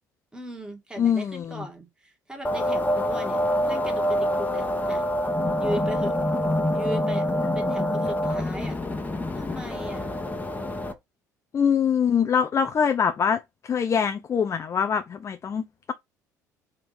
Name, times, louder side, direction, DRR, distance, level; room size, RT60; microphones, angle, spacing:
voice 1, 0.3-3.4 3.6-5.1 5.6-6.1 6.7-7.3 7.5-8.7 9.3-10.1, right 1 dB, 10° right, 1.6 m, -37 dB
voice 2, 1.0-1.7 11.5-15.6, left 7 dB, 35° left, 0.5 m, -24 dB
sound 1, 2.4-10.9, left 1 dB, 15° left, 1.0 m, -26 dB
3.6 x 2.8 x 4.0 m
figure-of-eight pair, 55°, 9 cm